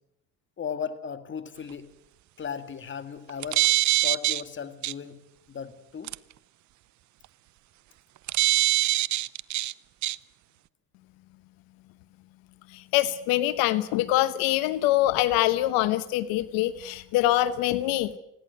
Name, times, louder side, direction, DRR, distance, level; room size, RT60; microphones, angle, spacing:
voice 1, 0.6-1.9 2.4-3.7 4.0-5.2 5.5-6.1, left 7 dB, 35° left, 10 dB, 2.0 m, -36 dB
sound 1, 3.3-4.4 4.8-4.9 6.1-6.2 8.3-9.7 10.0-10.2, right 15 dB, 55° right, 0.7 m, -23 dB
voice 2, 12.7-18.1, left 14 dB, 85° left, 15 dB, 1.0 m, -24 dB
20.5 x 16.0 x 9.3 m, 0.82 s
cardioid pair, 100°, 34 cm